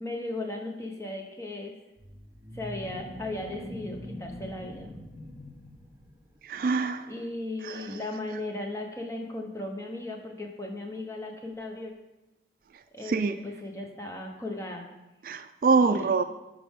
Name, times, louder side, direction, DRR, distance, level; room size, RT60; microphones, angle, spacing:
voice 1, 0.0-1.7 2.5-5.0 7.1-11.9 12.9-14.9 15.8-16.1, left 2 dB, 15° left, 2 dB, 1.0 m, -36 dB
sound 1, 2.0-6.4, left 1 dB, 15° right, 0.9 m, -43 dB
voice 2, 6.5-7.0 7.6-7.8 13.1-13.3 15.2-16.2, right 4 dB, 50° right, 9 dB, 0.3 m, -24 dB
11.5 x 4.9 x 3.6 m, 1.0 s
head